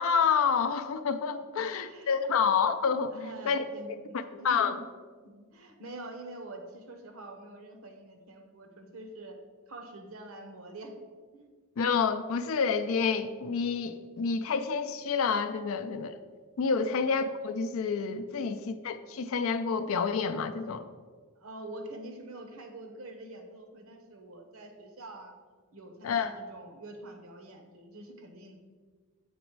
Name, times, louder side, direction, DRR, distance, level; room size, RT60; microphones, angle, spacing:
voice 1, 0.0-3.1 3.5-3.6 4.4-4.8 11.8-16.2 16.6-20.9 26.0-26.3, left 5 dB, 70° left, 10 dB, 0.4 m, -28 dB
voice 2, 1.8-2.3 3.1-4.9 5.2-9.4 9.7-10.9 11.3-11.5 16.8-17.0 18.3-18.6 21.4-25.3 25.7-28.6, right 2 dB, 75° right, 5 dB, 1.0 m, -46 dB
8.2 x 4.0 x 4.6 m, 1.5 s
head